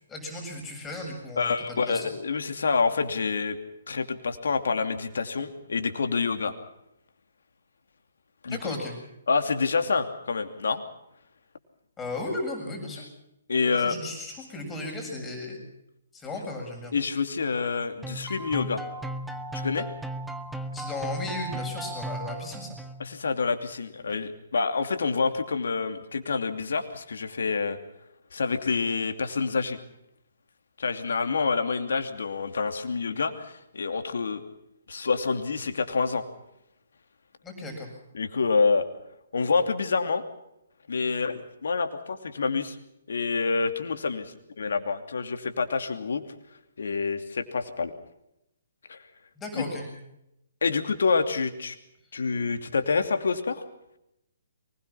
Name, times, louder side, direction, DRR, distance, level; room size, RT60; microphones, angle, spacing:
voice 1, 0.1-2.1 8.5-9.0 12.0-13.0 13.7-15.6 16.1-17.0 20.7-22.8 37.4-37.9 49.4-49.9, left 2 dB, 15° left, 1 dB, 7.4 m, -35 dB
voice 2, 1.4-3.6 3.9-6.6 8.4-8.8 9.3-10.8 13.5-13.9 16.9-18.8 19.5-19.9 23.0-27.8 28.3-29.8 30.8-34.4 34.9-36.2 38.1-38.8 39.3-40.2 40.9-42.8 43.1-46.2 46.8-47.9 48.9-49.0 49.6-49.7 50.6-51.7 52.1-53.6, left 4 dB, 70° left, 7 dB, 2.8 m, -27 dB
sound 1, 18.0-23.2, right 1 dB, 5° right, 1.5 m, -36 dB
24.0 x 21.0 x 5.8 m, 0.85 s
figure-of-eight pair, 135°, 0 cm